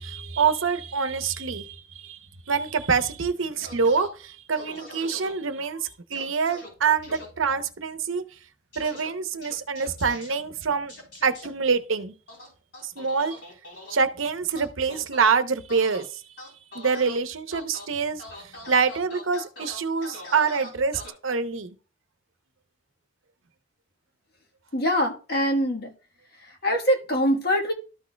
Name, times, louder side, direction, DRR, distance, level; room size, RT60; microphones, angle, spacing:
voice 1, 0.0-2.2 2.5-8.2 8.8-10.9 11.2-12.1 12.8-13.4 13.9-16.1 16.7-18.2 18.7-21.7, right 5 dB, 80° right, 0.8 m, -26 dB
sound 1, 3.6-4.1 4.5-5.3 6.1-6.7 7.0-7.3 8.7-9.1 9.4-10.3 10.9-11.5 12.3-14.0 14.6-15.2 15.7-16.0 16.4-17.2 17.5-17.9 18.2-21.1, left 1 dB, 70° left, 3.7 m, -42 dB
voice 2, 24.7-25.9 26.6-27.7, equal, 50° left, 1.4 m, -23 dB
13.0 x 6.2 x 2.3 m
head